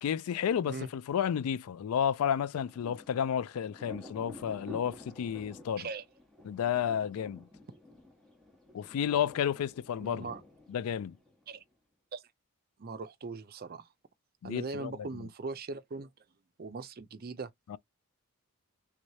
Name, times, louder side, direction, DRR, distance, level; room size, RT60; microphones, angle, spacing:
voice 1, 0.0-5.9 6.4-7.5 8.7-10.3 10.7-11.2 14.4-15.3 17.7-17.8, left 8 dB, 75° left, 0.3 m, -31 dB
Thunder, 2.5-11.7, left 1 dB, ahead, 1.2 m, -51 dB
voice 2, 10.0-10.4 11.5-11.6 12.1-12.2 12.8-13.9 14.4-16.1 16.6-17.5, right 3 dB, 45° right, 0.5 m, -40 dB
3.5 x 3.2 x 2.7 m
head